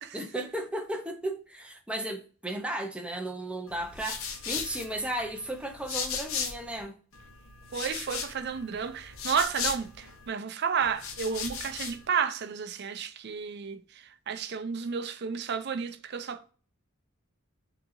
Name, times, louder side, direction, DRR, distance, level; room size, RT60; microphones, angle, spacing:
voice 1, 0.1-6.9, right 1 dB, 5° right, 0.6 m, -35 dB
sound 1, 3.7-6.8 7.1-10.3 10.8-12.1, left 6 dB, 80° left, 0.9 m, -37 dB
voice 2, 7.7-13.8 14.3-16.5, right 6 dB, 50° right, 0.5 m, -32 dB
6.4 x 2.8 x 2.5 m
head